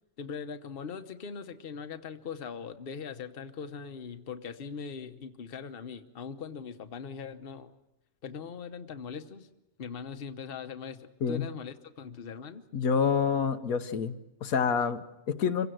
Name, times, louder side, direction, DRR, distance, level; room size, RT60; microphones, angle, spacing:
voice 1, 0.2-7.7 8.2-9.5 9.8-12.6, left 6 dB, 45° left, 8 dB, 1.1 m, -41 dB
voice 2, 12.7-15.7, left 6 dB, 90° left, 9 dB, 1.4 m, -28 dB
26.0 x 16.5 x 7.8 m, 0.99 s
omnidirectional pair, 1.4 m